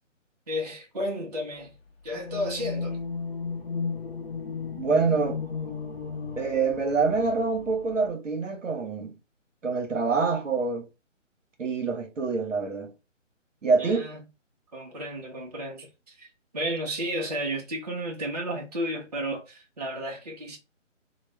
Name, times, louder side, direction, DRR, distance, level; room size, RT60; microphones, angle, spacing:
voice 1, 0.5-1.7 2.0-3.0 13.8-14.2 14.7-20.6, equal, 30° right, 0.5 m, -33 dB
sound 1, 2.1-8.1, left 5 dB, 50° left, 0.6 m, -35 dB
voice 2, 4.7-5.4 6.4-9.2 9.6-10.9 11.6-12.9 13.6-14.1, right 4 dB, 75° right, 0.8 m, -26 dB
2.3 x 2.0 x 3.1 m
figure-of-eight pair, 150°, 38 cm